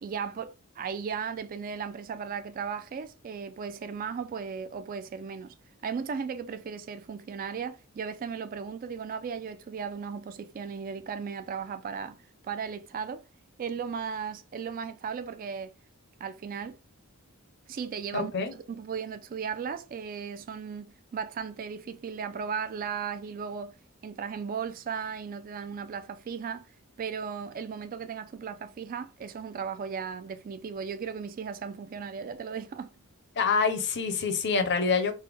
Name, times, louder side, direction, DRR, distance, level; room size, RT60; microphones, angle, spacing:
voice 1, 0.0-5.6 5.8-12.2 12.4-13.3 13.6-15.7 16.2-16.8 17.7-23.8 24.0-26.7 27.0-32.9, right 6 dB, 40° right, 0.3 m, -36 dB
voice 2, 18.1-18.5 33.4-35.1, left 5 dB, 55° left, 0.6 m, -26 dB
3.3 x 2.1 x 3.3 m
head